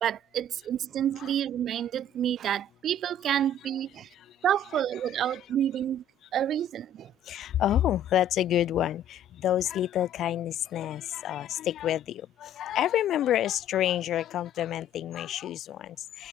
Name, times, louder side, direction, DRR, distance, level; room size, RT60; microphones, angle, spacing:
voice 1, 0.0-4.1 4.4-6.0 6.3-7.1, right 10 dB, 70° right, 0.7 m, -29 dB
voice 2, 4.7-5.4 7.2-16.3, left 12 dB, 75° left, 0.5 m, -29 dB
cardioid pair, 90°, 0 cm